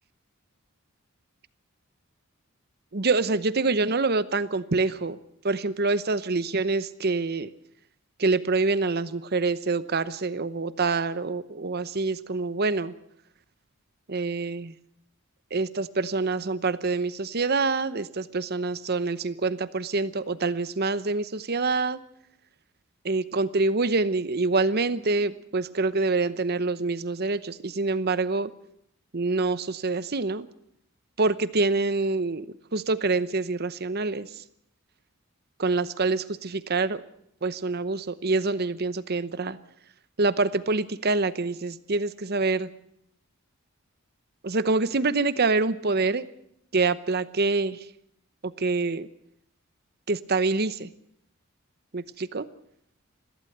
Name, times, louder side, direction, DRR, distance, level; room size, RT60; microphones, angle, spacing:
voice 1, 2.9-5.2 5.4-7.5 8.2-12.9 14.1-14.7 15.5-22.0 23.0-28.5 29.1-30.5 31.2-32.5 32.7-34.3 35.6-37.0 37.4-39.6 40.2-42.7 44.4-46.3 46.7-47.8 48.4-49.1 50.1-50.9 51.9-52.5, right 3 dB, 50° right, 14 dB, 0.9 m, -26 dB
22.0 x 15.5 x 8.0 m, 0.74 s
head